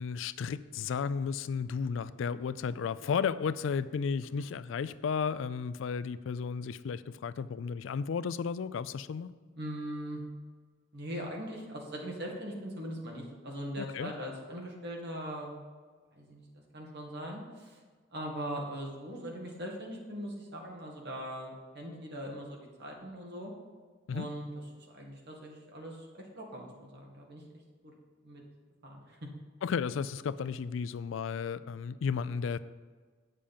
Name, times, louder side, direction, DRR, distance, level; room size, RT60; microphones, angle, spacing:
voice 1, 0.0-9.3 13.8-14.1 24.1-24.3 29.6-32.6, left 6 dB, 70° left, 16 dB, 0.4 m, -33 dB
voice 2, 9.6-10.2 10.9-15.5 16.2-16.4 16.7-17.8 18.1-23.5 24.1-24.5 24.8-27.4 27.8-27.9 28.2-28.4 28.8-29.2, equal, 60° right, 0 dB, 2.0 m, -40 dB
8.9 x 6.7 x 5.5 m, 1.4 s
head